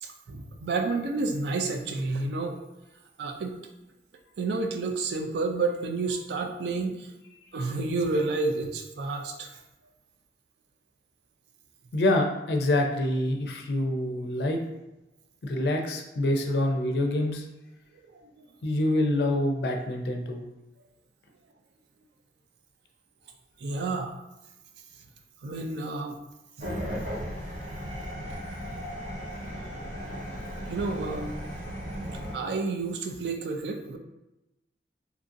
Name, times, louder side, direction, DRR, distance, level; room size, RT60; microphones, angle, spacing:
voice 1, 0.0-2.6 3.2-3.6 4.4-7.1 7.5-9.5 18.0-18.2 23.6-24.1 25.4-26.2 30.7-31.3 32.3-34.0, right 3 dB, 70° right, 5 dB, 0.3 m, -30 dB
voice 2, 11.9-14.6 15.4-17.4 18.6-20.4, left 1 dB, 65° left, 3 dB, 0.4 m, -26 dB
sound 1, 26.6-32.3, equal, 85° right, 1.3 m, -36 dB
2.8 x 2.5 x 2.5 m, 0.97 s
head